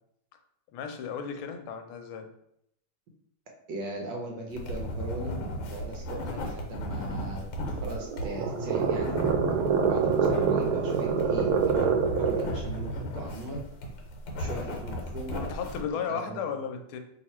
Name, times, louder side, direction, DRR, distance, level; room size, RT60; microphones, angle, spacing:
voice 1, 0.7-2.3 14.4-14.6 15.4-17.0, left 7 dB, 90° left, 6 dB, 1.5 m, -35 dB
voice 2, 3.7-7.5 7.8-9.2 9.9-13.6 14.4-15.5 16.1-16.5, right 1 dB, 70° right, 0 dB, 1.2 m, -39 dB
sound 1, 4.5-15.8, equal, 70° left, 1.5 m, -36 dB
sound 2, 7.6-12.6, right 6 dB, 85° right, 1.5 m, -26 dB
3.2 x 2.8 x 4.2 m, 0.77 s
omnidirectional pair, 2.3 m